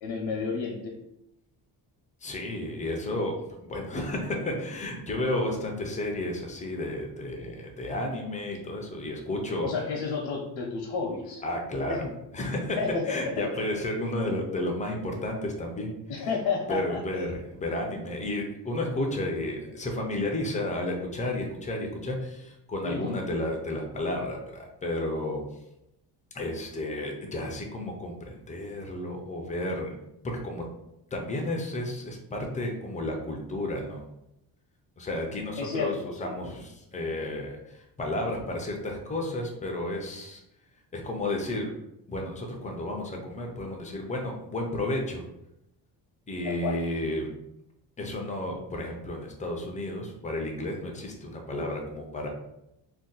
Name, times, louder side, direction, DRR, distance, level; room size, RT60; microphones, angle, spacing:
voice 1, 0.0-1.0 9.6-11.4 11.9-12.1 12.8-13.5 16.1-17.3 22.8-23.3 35.6-36.3 46.4-46.8, left 5 dB, 85° left, -1 dB, 0.7 m, -31 dB
voice 2, 2.2-3.3 3.7-9.7 11.4-12.1 12.3-12.8 13.1-16.3 16.7-25.4 26.3-29.9 30.2-30.6 31.1-34.0 35.0-35.9 36.2-40.4 40.9-41.7 42.1-45.2 46.3-47.3 48.0-52.3, left 1 dB, 20° left, 1 dB, 0.3 m, -32 dB
2.6 x 2.1 x 3.8 m, 0.85 s
cardioid pair, 155°, 42 cm